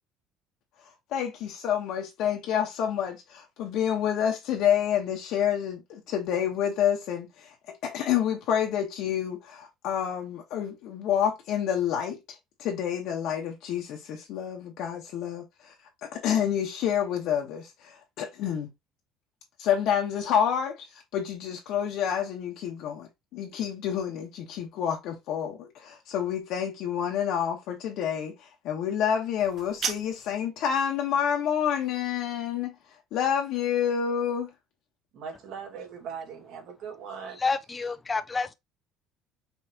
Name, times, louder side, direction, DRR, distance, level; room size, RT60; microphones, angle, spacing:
voice 1, 1.1-7.5 7.8-15.7 16.0-18.7 19.6-20.8 21.1-32.7 33.1-34.5, left 9 dB, 65° left, 1.2 m, -28 dB
sound 1, 29.4-30.4, right 6 dB, 40° right, 1.0 m, -34 dB
voice 2, 35.1-37.4, right 6 dB, 65° right, 2.0 m, -40 dB
voice 3, 37.4-38.5, left 4 dB, 15° left, 0.4 m, -29 dB
5.5 x 3.3 x 2.9 m
cardioid pair, 150°, 0 cm